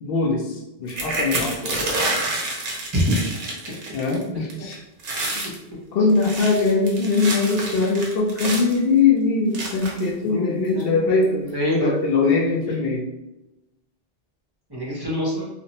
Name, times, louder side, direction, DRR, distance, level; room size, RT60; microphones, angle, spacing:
voice 1, 0.0-1.8 3.9-4.8 5.4-5.5 5.9-11.4 11.8-13.0, left 4 dB, 70° left, -1 dB, 0.7 m, -21 dB
sound 1, 0.9-4.2 4.5-4.7 5.0-5.6 6.1-8.8 9.5-10.1 10.8-10.9 11.2-11.5, right 2 dB, 60° right, 0.7 m, -28 dB
voice 2, 10.2-11.0 11.4-12.0 14.7-15.5, left 1 dB, 25° right, -6 dB, 0.6 m, -26 dB
2.5 x 2.0 x 2.8 m, 0.91 s
omnidirectional pair, 1.0 m